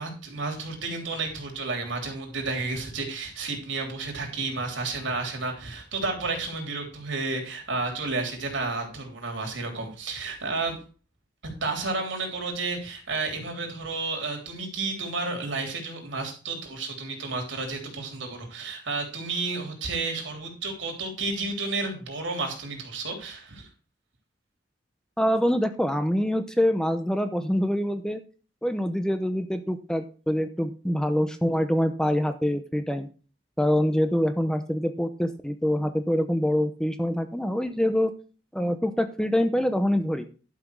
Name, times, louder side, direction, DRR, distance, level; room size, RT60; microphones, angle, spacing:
voice 1, 0.0-10.8 11.4-23.7, right 3 dB, 85° right, 2 dB, 3.3 m, -31 dB
voice 2, 25.2-28.2 28.6-33.1 33.6-38.1 38.5-40.2, equal, 5° left, 8 dB, 0.7 m, -25 dB
11.5 x 5.9 x 4.7 m, 0.37 s
head